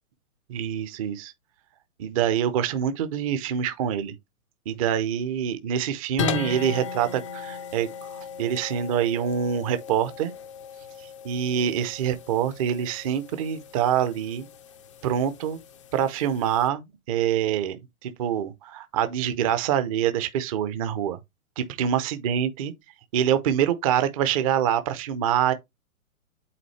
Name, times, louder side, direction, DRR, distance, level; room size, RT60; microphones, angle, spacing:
voice 1, 0.5-1.3 2.0-4.1 4.7-10.3 11.0-14.5 15.0-15.6 15.9-17.8 18.0-21.2 21.6-22.7 23.1-25.5, right 9 dB, 25° right, 0.6 m, -25 dB
sound 1, 6.2-16.7, left 5 dB, 25° left, 0.4 m, -37 dB
8.5 x 3.7 x 3.1 m
hypercardioid pair, 135°, 42 cm